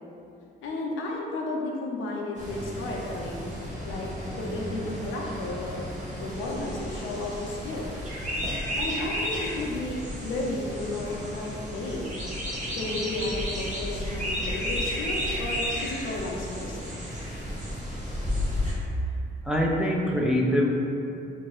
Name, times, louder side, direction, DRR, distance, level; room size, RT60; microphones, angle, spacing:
voice 1, 0.6-3.5 3.8-5.9 6.2-7.9 8.7-12.1 12.7-16.8, left 2 dB, 80° left, -2 dB, 0.6 m, -33 dB
sound 1, 2.4-18.7, equal, 40° right, 0.9 m, -33 dB
voice 2, 19.4-20.7, equal, 5° right, -3 dB, 0.3 m, -23 dB
2.7 x 2.6 x 3.0 m, 2.7 s
cardioid pair, 90°, 20 cm